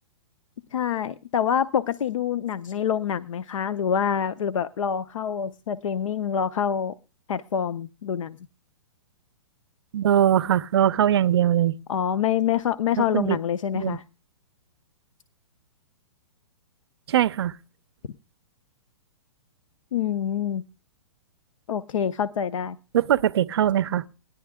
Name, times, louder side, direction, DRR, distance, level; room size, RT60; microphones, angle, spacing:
voice 1, 0.7-6.9 7.3-8.4 11.9-14.0 19.9-20.6 21.7-22.8, left 8 dB, 85° left, 0.6 m, -26 dB
voice 2, 9.9-11.7 13.0-13.4 13.7-14.0 17.1-17.5 22.9-24.1, right 10 dB, 55° right, 0.5 m, -21 dB
17.5 x 11.0 x 3.5 m
hypercardioid pair, 175°, 16 cm